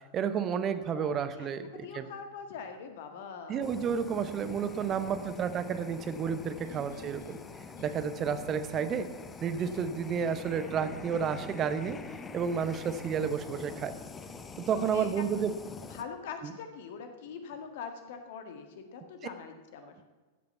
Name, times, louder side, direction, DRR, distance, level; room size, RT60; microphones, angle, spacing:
voice 1, 0.1-2.1 3.5-7.4 7.8-9.1 9.4-12.0 12.3-13.9 14.6-15.5 16.4-16.5, right 7 dB, 30° right, 11 dB, 0.9 m, -31 dB
voice 2, 0.9-3.7 4.9-5.4 6.6-7.5 7.8-8.0 9.6-9.8 14.7-15.1 15.9-19.9, left 6 dB, 55° left, 6 dB, 1.7 m, -44 dB
Fire, 3.6-16.0, left 4 dB, 20° left, 0.9 m, -45 dB
14.5 x 8.5 x 7.0 m, 1.3 s
figure-of-eight pair, 90°, 0 cm